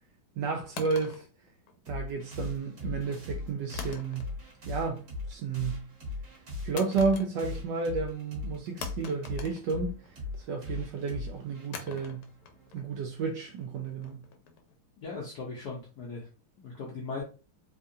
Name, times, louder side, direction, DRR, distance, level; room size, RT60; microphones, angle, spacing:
voice 1, 0.4-1.2 1.9-4.3 4.7-5.9 6.6-10.0 10.4-12.3 12.7-14.2, right 4 dB, 80° right, 0.9 m, -32 dB
sound 1, 0.8-2.2 3.7-4.6 4.9-5.3 6.8-7.7 8.0-8.1 8.8-10.3 11.7-14.7, left 6 dB, 80° left, 1.5 m, -45 dB
sound 2, 1.9-12.9, left 3 dB, 40° right, 1.4 m, -40 dB
voice 2, 15.0-16.3 16.6-17.2, left 4 dB, 65° left, 1.1 m, -38 dB
3.5 x 2.3 x 2.6 m
omnidirectional pair, 2.4 m